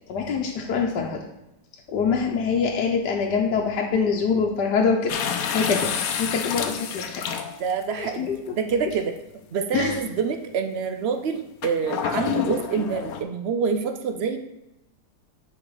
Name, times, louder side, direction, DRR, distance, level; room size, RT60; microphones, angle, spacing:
voice 1, 0.1-1.3 1.9-5.9 6.2-7.2 7.9-8.4 9.7-10.0, left 5 dB, 85° left, 0 dB, 1.4 m, -24 dB
sound 1, 5.1-7.8 8.7-8.8 11.6-13.2, left 7 dB, 65° left, 1.0 m, -28 dB
voice 2, 7.6-9.1 9.5-14.4, right 6 dB, 75° right, 6 dB, 0.5 m, -26 dB
8.7 x 4.5 x 3.9 m, 0.93 s
omnidirectional pair, 1.8 m